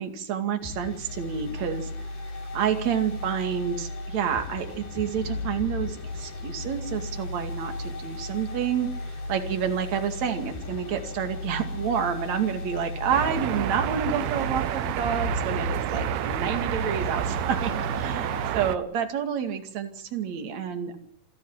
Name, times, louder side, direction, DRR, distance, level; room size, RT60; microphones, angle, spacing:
voice 1, 0.0-1.9 2.5-21.0, right 8 dB, 50° right, 6 dB, 3.3 m, -29 dB
sound 1, 0.6-18.5, left 2 dB, 90° left, 6.2 m, -35 dB
sound 2, 4.6-16.6, left 2 dB, 65° left, 7.3 m, -47 dB
sound 3, 13.1-18.8, right 12 dB, 90° right, 2.9 m, -29 dB
27.0 x 13.5 x 7.4 m, 0.63 s
omnidirectional pair, 4.3 m